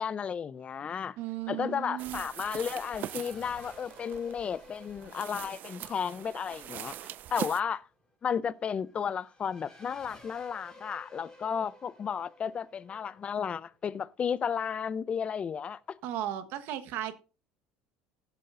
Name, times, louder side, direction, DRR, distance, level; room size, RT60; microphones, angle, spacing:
voice 1, 0.0-1.2 1.5-7.9 8.2-15.8, left 7 dB, 30° left, 0.6 m, -33 dB
Race car auto racing / Accelerating revving vroom, 0.6-14.6, left 1 dB, 10° left, 5.5 m, -56 dB
voice 2, 1.2-2.2 16.0-17.2, right 12 dB, 65° right, 1.3 m, -35 dB
sound 1, 2.0-7.6, right 12 dB, 50° right, 0.4 m, -42 dB
15.0 x 8.3 x 2.6 m
supercardioid pair, 115°, 4 cm